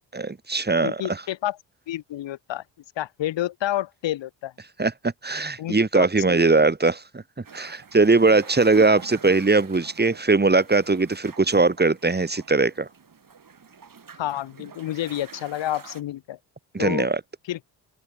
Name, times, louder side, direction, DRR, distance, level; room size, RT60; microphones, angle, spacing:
voice 1, 0.1-1.2 4.8-4.9 5.2-7.2 7.5-12.9 16.7-17.2, right 3 dB, 20° right, 2.9 m, -20 dB
voice 2, 0.8-1.6 1.9-2.6 3.0-4.5 5.6-6.4 14.2-16.4 16.8-17.1 17.5-17.6, left 13 dB, 65° left, 2.0 m, -29 dB
sound 1, 7.4-16.0, right 6 dB, 40° right, 7.7 m, -46 dB
open air
hypercardioid pair, 55°, 48 cm